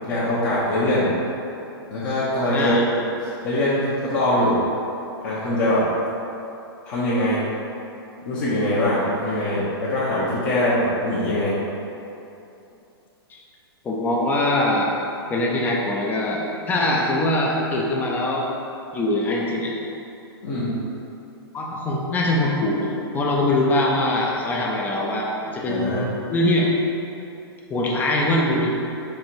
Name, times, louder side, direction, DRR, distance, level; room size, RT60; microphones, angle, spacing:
voice 1, 0.0-1.1 1.9-3.0 3.4-4.6 5.2-5.9 6.8-7.4 8.3-11.5 20.4-20.8 25.6-26.1, left 1 dB, 50° left, -10 dB, 1.0 m, -22 dB
voice 2, 2.5-2.8 13.3-13.4 13.8-14.9 15.3-18.5 18.9-19.7 21.5-26.7 27.7-28.7, left 1 dB, 15° left, -2 dB, 0.5 m, -22 dB
4.5 x 2.5 x 4.5 m, 2.8 s
hypercardioid pair, 130°, 13 cm